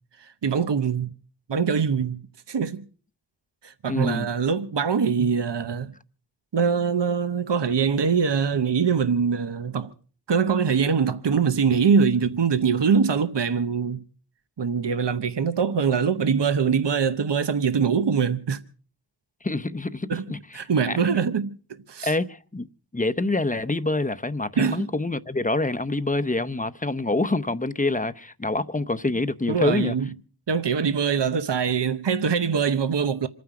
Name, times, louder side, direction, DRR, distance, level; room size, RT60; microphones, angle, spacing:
voice 1, 0.2-1.1 1.5-2.2 2.5-2.8 3.6-5.9 6.5-9.9 10.3-14.0 14.6-18.6 20.1-20.2 20.5-21.5 21.9-22.1 24.6-24.9 29.5-30.1 30.5-33.3, right 6 dB, 75° right, 0.9 m, -23 dB
voice 2, 3.9-4.3 19.4-20.6 20.9-21.0 22.0-22.7 22.9-29.9, left 2 dB, 20° left, 0.7 m, -26 dB
27.5 x 9.5 x 4.9 m
wide cardioid pair, 75°, 42 cm